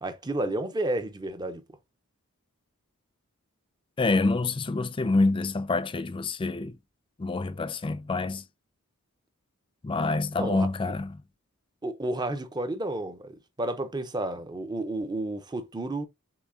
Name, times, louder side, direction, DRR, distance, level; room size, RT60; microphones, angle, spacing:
voice 1, 0.0-1.6 10.4-10.7 11.8-16.1, right 1 dB, 20° right, 0.6 m, -31 dB
voice 2, 4.0-6.7 7.2-8.4 9.8-11.2, left 3 dB, 25° left, 0.4 m, -27 dB
6.9 x 2.8 x 2.6 m
head